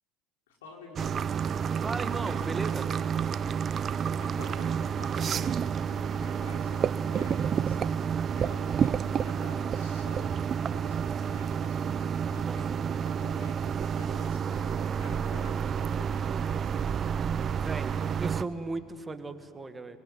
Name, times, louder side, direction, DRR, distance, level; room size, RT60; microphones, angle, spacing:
voice 1, 0.5-1.3 4.2-10.3 10.6-16.7, left 3 dB, 85° left, -1 dB, 5.4 m, -49 dB
sound 1, 1.0-18.4, right 7 dB, 40° right, 0.6 m, -30 dB
voice 2, 1.8-2.9 12.4-12.6 17.6-17.9 18.2-20.0, right 3 dB, 20° right, 8 dB, 1.8 m, -36 dB
24.0 x 23.5 x 9.6 m, 2.2 s
hypercardioid pair, 80°, 0 cm